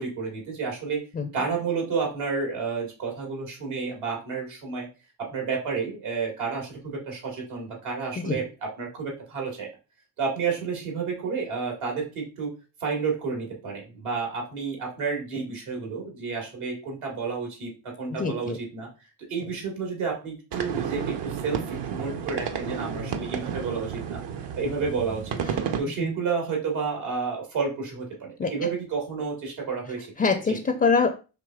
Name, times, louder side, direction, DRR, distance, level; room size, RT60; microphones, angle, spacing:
voice 1, 0.0-1.1 1.3-4.9 5.2-9.7 10.2-12.5 12.8-18.9 19.3-24.2 24.6-25.3 25.8-30.1 30.5-30.6, right 5 dB, 80° right, 0 dB, 1.7 m, -30 dB
voice 2, 18.1-18.6 26.0-26.1 28.4-28.7 30.2-31.2, left 4 dB, 20° left, 6 dB, 0.4 m, -25 dB
sound 1, 20.5-25.8, right 7 dB, 60° right, 0.7 m, -31 dB
4.9 x 2.9 x 2.3 m, 0.32 s
supercardioid pair, 50°, 49 cm